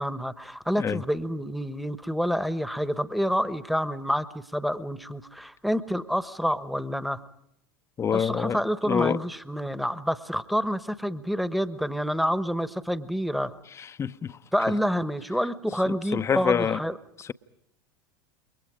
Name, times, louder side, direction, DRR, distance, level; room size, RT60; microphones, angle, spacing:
voice 1, 0.0-7.2 8.1-13.5 14.5-17.0, equal, ahead, 1.2 m, -28 dB
voice 2, 8.0-9.2 13.7-14.4 14.7-14.8 15.9-16.8 17.2-17.3, left 7 dB, 25° left, 0.8 m, -27 dB
28.5 x 23.0 x 5.0 m
figure-of-eight pair, 80°, 11 cm